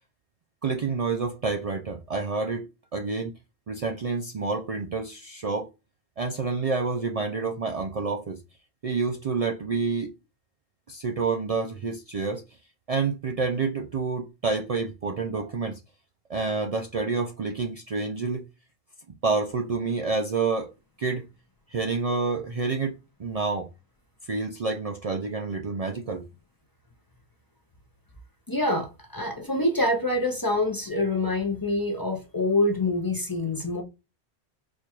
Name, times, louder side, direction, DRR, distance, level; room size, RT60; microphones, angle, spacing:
voice 1, 0.6-2.7 2.9-3.3 3.7-5.7 6.2-8.4 8.8-10.1 10.9-12.4 12.9-15.8 16.3-18.4 19.2-20.7 21.0-21.3 21.7-23.7 24.2-26.2, right 4 dB, 60° right, 0.4 m, -28 dB
voice 2, 28.5-33.8, left 2 dB, 30° left, 0.4 m, -26 dB
4.3 x 2.3 x 2.9 m
omnidirectional pair, 1.1 m